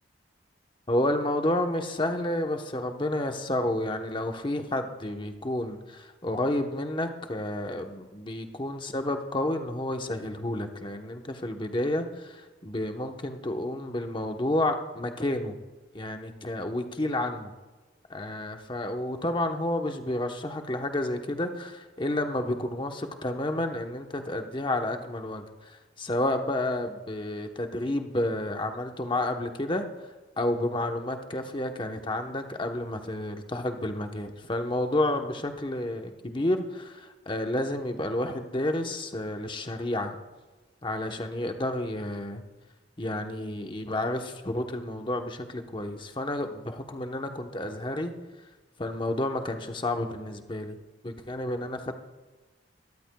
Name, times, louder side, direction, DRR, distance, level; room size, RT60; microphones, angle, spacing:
voice 1, 0.9-15.6 15.9-17.5 18.1-29.9 30.4-40.2 40.8-42.4 43.0-48.1 48.8-50.8 51.0-51.9, left 1 dB, 25° left, 5 dB, 0.9 m, -30 dB
21.5 x 13.5 x 2.3 m, 1.3 s
head